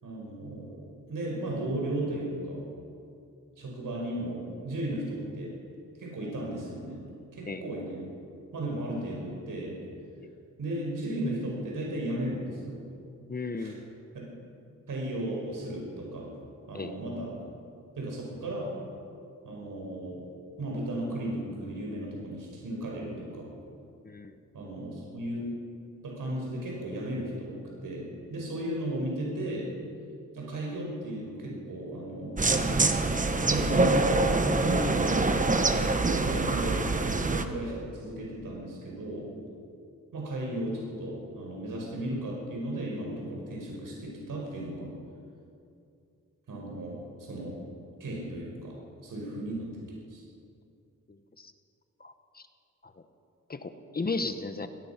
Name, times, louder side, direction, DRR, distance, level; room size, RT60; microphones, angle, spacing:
voice 1, 0.0-2.6 3.6-5.5 6.0-7.0 7.3-8.0 8.5-9.7 10.6-12.8 13.6-13.8 14.1-14.3 14.9-16.3 16.7-17.3 18.0-18.7 19.4-20.2 20.6-23.5 24.5-25.4 26.0-29.7 30.3-33.2 33.4-34.3 34.6-35.0 36.1-36.9 37.2-39.3 40.1-44.9 46.5-47.5 48.0-48.8 49.0-49.8 50.1-50.2, right 1 dB, 80° right, -2 dB, 5.5 m, -35 dB
voice 2, 13.3-13.8 16.7-16.9 24.0-24.3 51.1-51.5 52.0-52.5 52.8-52.9 53.5-54.7, left 3 dB, 30° left, 9 dB, 1.0 m, -35 dB
sound 1, 32.4-37.4, right 2 dB, 25° right, 1.1 m, -25 dB
24.5 x 18.0 x 5.9 m, 2.5 s
wide cardioid pair, 155°, 32 cm